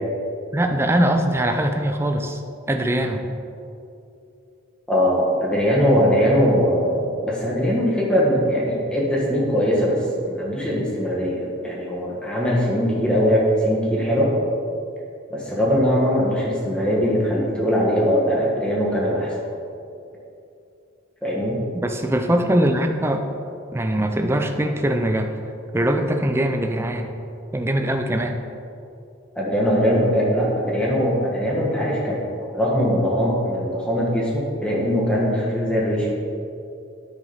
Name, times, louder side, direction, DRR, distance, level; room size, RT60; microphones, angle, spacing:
voice 1, 0.5-2.4 2.7-3.2 21.8-23.3 23.7-25.3 25.7-27.1 27.5-28.4, right 1 dB, 10° right, 5 dB, 0.4 m, -21 dB
voice 2, 4.9-10.0 10.2-14.3 15.3-19.3 21.2-21.6 29.3-36.2, equal, 5° left, -5 dB, 1.3 m, -21 dB
9.8 x 5.1 x 4.0 m, 2.7 s
head